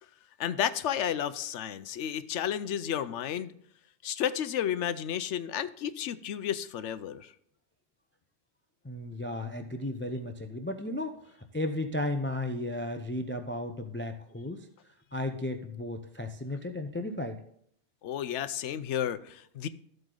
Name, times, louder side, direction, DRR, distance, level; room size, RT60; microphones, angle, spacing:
voice 1, 0.4-3.5 4.0-7.3 18.0-19.7, left 9 dB, 70° left, 14 dB, 0.9 m, -32 dB
voice 2, 8.8-14.7 15.1-17.4, left 1 dB, 15° left, 6 dB, 0.4 m, -34 dB
13.5 x 7.9 x 3.8 m, 0.68 s
omnidirectional pair, 1.4 m